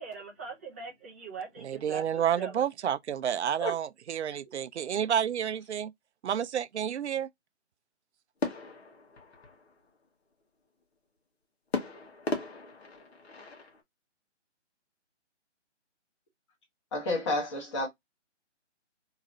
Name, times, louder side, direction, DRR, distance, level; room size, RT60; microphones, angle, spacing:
voice 1, 0.0-2.6, right 5 dB, 10° right, 0.5 m, -41 dB
voice 2, 1.6-5.9 6.2-7.3, right 9 dB, 70° right, 0.5 m, -30 dB
sound 1, 8.4-10.0 11.7-13.8, left 3 dB, 60° left, 1.3 m, -37 dB
voice 3, 16.9-17.9, left 1 dB, 25° left, 1.2 m, -30 dB
2.9 x 2.8 x 2.5 m
figure-of-eight pair, 150°, 36 cm